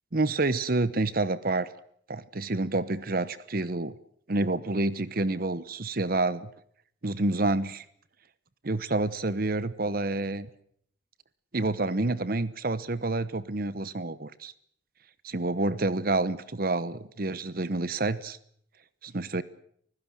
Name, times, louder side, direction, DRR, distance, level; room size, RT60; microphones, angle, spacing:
voice 1, 0.1-1.7 2.1-3.9 4.3-6.5 7.0-7.8 8.6-10.5 11.5-14.5 15.2-18.4 19.0-19.4, right 2 dB, 50° right, 16 dB, 1.0 m, -28 dB
24.5 x 16.0 x 9.1 m, 0.64 s
head